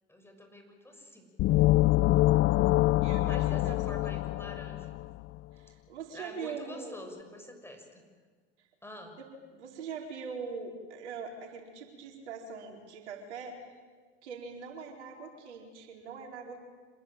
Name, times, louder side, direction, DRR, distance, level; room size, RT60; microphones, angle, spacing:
voice 1, 0.1-1.3 3.2-4.9 6.1-8.1 8.8-9.2, left 1 dB, 5° left, 4 dB, 6.3 m, -47 dB
sound 1, 1.4-5.2, left 17 dB, 40° left, 0.7 m, -25 dB
voice 2, 3.0-4.0 5.5-7.0 8.6-8.7 9.2-13.6 14.2-16.6, right 5 dB, 80° right, 2 dB, 4.7 m, -42 dB
26.5 x 21.0 x 9.2 m, 1.5 s
hypercardioid pair, 85°, 34 cm